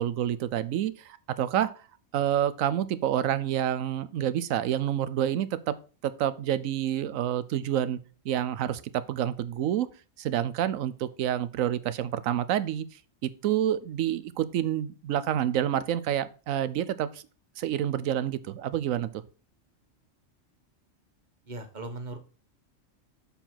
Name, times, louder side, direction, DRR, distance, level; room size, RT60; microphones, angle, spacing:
voice 1, 0.0-1.7 2.1-5.7 6.0-8.0 8.2-9.9 10.2-12.8 13.2-17.2 17.6-19.2, right 11 dB, 90° right, 15 dB, 1.1 m, -28 dB
voice 2, 21.5-22.2, right 2 dB, 35° right, 6 dB, 1.3 m, -38 dB
7.1 x 4.7 x 5.7 m, 0.37 s
omnidirectional pair, 1.3 m